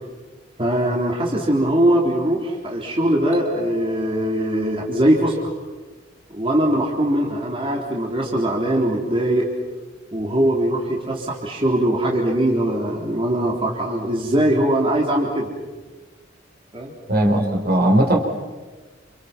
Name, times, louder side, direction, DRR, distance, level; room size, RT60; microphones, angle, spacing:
voice 1, 0.6-5.4 6.3-9.5 10.1-15.5 16.7-16.9, right 1 dB, 30° right, -2 dB, 3.7 m, -21 dB
sound 1, 3.3-4.5, right 1 dB, 70° right, 4.5 m, -36 dB
voice 2, 17.1-18.2, right 1 dB, 55° right, 2 dB, 4.6 m, -17 dB
29.0 x 28.5 x 6.0 m, 1.3 s
head